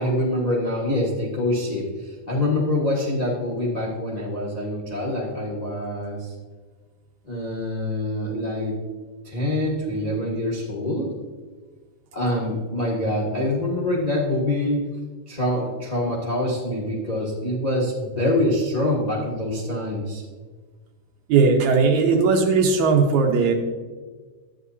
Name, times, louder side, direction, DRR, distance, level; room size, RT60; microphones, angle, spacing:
voice 1, 0.0-6.3 7.2-8.8 9.2-11.1 12.1-14.8 15.3-20.2, left 1 dB, 60° left, -4 dB, 0.4 m, -25 dB
voice 2, 21.3-23.5, right 4 dB, 70° right, 3 dB, 2.2 m, -18 dB
12.0 x 9.3 x 2.7 m, 1.4 s
omnidirectional pair, 3.5 m